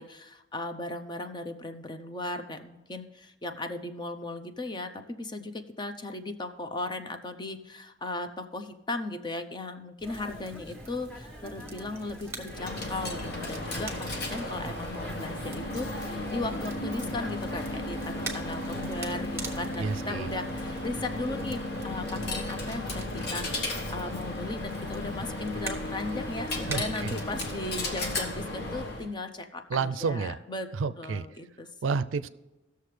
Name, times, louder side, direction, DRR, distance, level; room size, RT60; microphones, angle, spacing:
voice 1, 0.0-30.7 31.0-31.7, left 2 dB, 25° left, 7 dB, 0.6 m, -37 dB
sound 1, 10.0-19.6, left 1 dB, 5° left, 1.1 m, -47 dB
Crackle, 10.0-28.2, right 3 dB, 15° right, 1.2 m, -45 dB
Coin (dropping), 12.5-29.1, left 1 dB, 60° left, 1.3 m, -34 dB
voice 2, 19.8-20.3 26.6-27.2 29.7-30.4 30.8-31.3 31.8-32.3, right 5 dB, 90° right, 14 dB, 0.4 m, -30 dB
17.0 x 6.7 x 3.3 m, 1.0 s
head